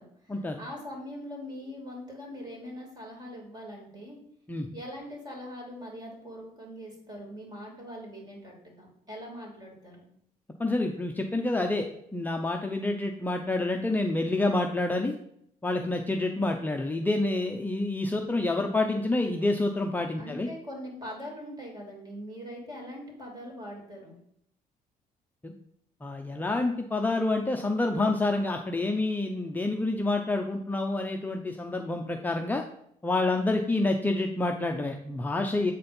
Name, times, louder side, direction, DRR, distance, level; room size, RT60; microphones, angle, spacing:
voice 1, 0.0-4.2 4.7-10.1 20.2-24.2, equal, 25° right, -1 dB, 3.1 m, -42 dB
voice 2, 10.6-11.9 12.1-15.1 15.6-20.5 25.4-25.5 26.0-32.6 33.0-35.7, left 2 dB, 10° left, 2 dB, 0.6 m, -28 dB
7.9 x 4.2 x 5.3 m, 0.71 s
cardioid pair, 115°, 15 cm